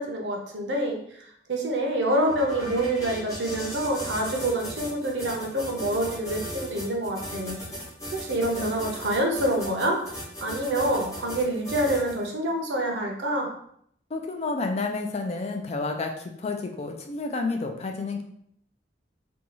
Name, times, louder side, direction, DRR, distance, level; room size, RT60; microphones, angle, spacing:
voice 1, 0.0-7.6 8.1-10.0 10.4-13.5, right 1 dB, 80° right, 1 dB, 0.6 m, -27 dB
sound 1, 2.2-12.3, equal, 20° left, 0.8 m, -37 dB
voice 2, 14.1-18.2, left 3 dB, 35° left, 3 dB, 0.4 m, -30 dB
2.6 x 2.3 x 2.9 m, 0.69 s
head